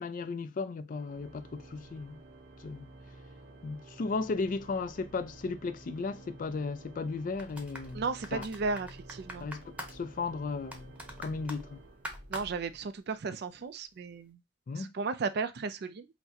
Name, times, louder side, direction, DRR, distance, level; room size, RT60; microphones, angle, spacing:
voice 1, 0.0-2.2 2.6-2.9 3.6-8.0 8.3-8.5 9.4-10.9 11.2-11.8 14.7-14.9, left 4 dB, 45° left, 0.4 m, -35 dB
Organ, 0.9-12.7, right 2 dB, 80° right, 1.0 m, -52 dB
sound 1, 7.3-13.2 13.5-13.6, equal, 5° right, 0.9 m, -46 dB
voice 2, 7.9-9.5 12.3-14.4 14.8-16.1, right 4 dB, 60° right, 0.4 m, -34 dB
5.7 x 2.1 x 2.7 m
head